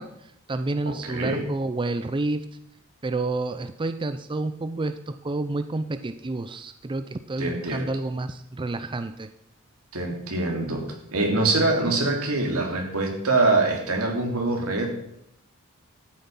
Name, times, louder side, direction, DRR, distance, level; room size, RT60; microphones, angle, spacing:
voice 1, 0.0-2.5 3.0-9.3, right 2 dB, 20° right, 11 dB, 0.5 m, -29 dB
voice 2, 0.8-1.4 7.4-7.9 9.9-10.8 11.1-14.9, right 2 dB, 75° right, 1 dB, 3.4 m, -24 dB
12.5 x 9.4 x 5.6 m, 0.80 s
head